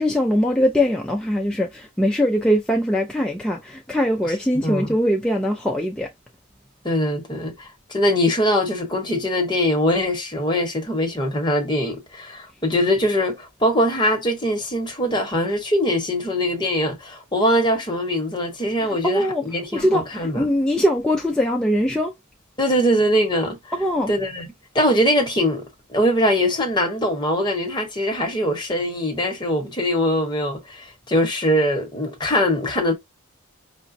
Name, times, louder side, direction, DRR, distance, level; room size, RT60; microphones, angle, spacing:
voice 1, 0.0-6.1 18.8-19.4 19.7-22.1 23.7-24.1, equal, 5° left, 0.3 m, -21 dB
voice 2, 4.5-4.9 6.8-20.5 22.6-23.7 24.1-24.5 24.7-25.6 25.9-32.9, equal, 20° left, 0.9 m, -22 dB
4.8 x 2.1 x 2.5 m
head